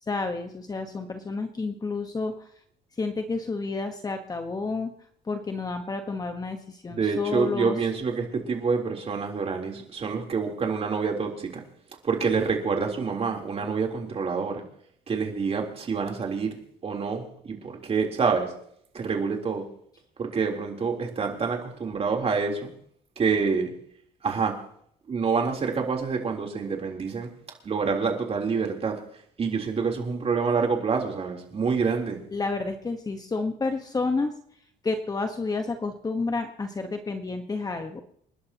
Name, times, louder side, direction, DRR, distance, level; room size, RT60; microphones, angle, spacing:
voice 1, 0.0-2.5 3.0-4.9 5.2-7.8 32.3-34.3 34.8-38.0, left 3 dB, 20° left, 5 dB, 1.3 m, -30 dB
voice 2, 6.9-11.6 12.0-14.6 15.1-18.5 18.9-19.6 20.2-22.7 23.2-23.7 24.2-24.5 25.1-27.3 27.6-29.0 29.4-32.2, right 5 dB, 35° right, 1 dB, 3.6 m, -27 dB
28.5 x 11.5 x 3.0 m, 0.64 s
cardioid pair, 110°, 17 cm